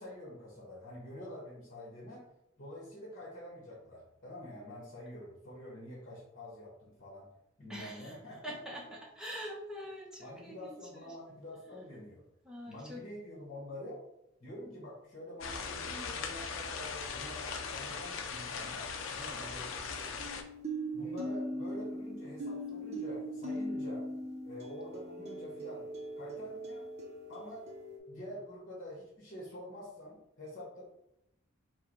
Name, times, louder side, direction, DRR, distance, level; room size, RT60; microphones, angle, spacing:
voice 1, 0.0-2.3 2.6-7.3 7.6-8.7 10.2-12.2 12.7-14.0 14.4-20.1 20.9-24.1 24.4-25.8 26.2-26.8 27.3-27.6 28.1-30.8, left 1 dB, 40° left, -4 dB, 1.3 m, -47 dB
voice 2, 7.7-8.1 8.4-11.1 12.5-13.0, equal, 5° right, -4 dB, 1.0 m, -44 dB
sound 1, 15.4-20.4, left 5 dB, 75° left, 0.5 m, -39 dB
sound 2, 16.8-17.6 20.2-28.0, right 1 dB, 35° right, 0.8 m, -40 dB
4.7 x 2.3 x 4.6 m, 0.82 s
head